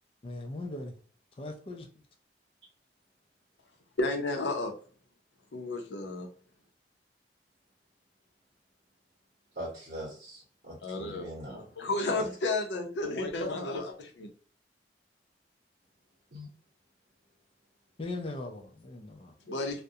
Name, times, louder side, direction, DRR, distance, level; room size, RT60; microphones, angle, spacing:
voice 1, 0.2-1.0 1.4-1.9 18.0-19.3, left 2 dB, 30° left, 0.4 m, -39 dB
voice 2, 4.0-4.7 5.5-6.3 10.8-14.3 19.5-19.8, left 2 dB, 85° left, 0.6 m, -32 dB
voice 3, 9.5-11.7 12.1-12.2 16.3-16.5, equal, 60° right, 0.9 m, -41 dB
2.4 x 2.1 x 2.6 m
head